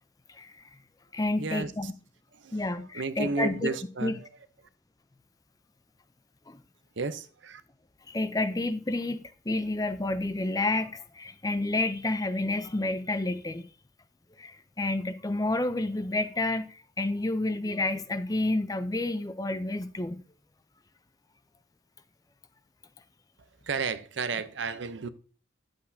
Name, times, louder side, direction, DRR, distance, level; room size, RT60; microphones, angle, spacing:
voice 1, 0.3-0.6 1.1-1.9 2.5-4.2 6.5-6.6 8.1-13.7 14.4-20.2, left 2 dB, 20° left, 0.5 m, -30 dB
voice 2, 1.4-1.9 2.4-4.3 7.0-7.6 23.6-25.1, right 4 dB, 70° right, 0.6 m, -33 dB
10.5 x 7.8 x 2.7 m
head